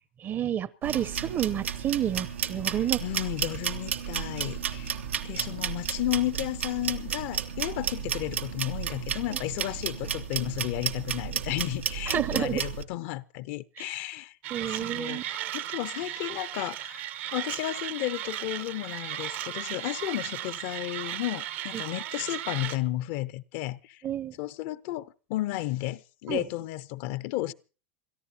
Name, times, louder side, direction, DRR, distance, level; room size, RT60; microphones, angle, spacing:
voice 1, 0.2-3.0 12.1-12.6 13.8-13.9 14.5-15.2 21.7-21.8 24.0-24.4 26.3-26.4, right 10 dB, 30° right, 0.8 m, -30 dB
sound 1, 0.8-12.8, right 8 dB, 90° right, 1.1 m, -33 dB
voice 2, 3.0-4.9 5.2-14.3 14.7-17.0 17.3-24.0 24.4-27.5, left 16 dB, 60° left, 0.7 m, -33 dB
Mechanisms, 14.4-22.8, right 12 dB, 70° right, 1.2 m, -36 dB
28.0 x 13.5 x 2.8 m
hypercardioid pair, 105°, 6 cm